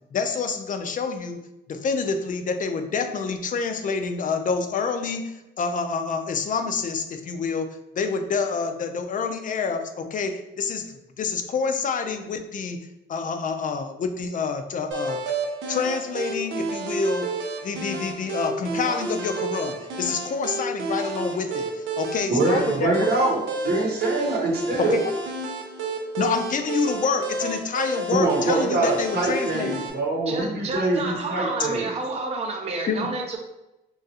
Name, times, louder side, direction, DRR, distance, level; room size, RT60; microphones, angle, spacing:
voice 1, 0.1-1.4 1.7-7.7 8.0-12.8 13.1-15.2 15.7-17.3 17.6-23.1 24.8-25.0 26.2-29.8 32.9-33.1, left 5 dB, 40° left, 7 dB, 0.4 m, -27 dB
sound 1, 14.9-29.9, right 3 dB, 80° right, 0.6 m, -31 dB
voice 2, 22.3-25.0 28.1-31.9, right 2 dB, 55° right, -2 dB, 0.9 m, -24 dB
voice 3, 30.3-33.4, right 3 dB, 30° right, 1 dB, 0.5 m, -29 dB
3.0 x 2.4 x 2.8 m, 0.91 s
cardioid pair, 90°, 20 cm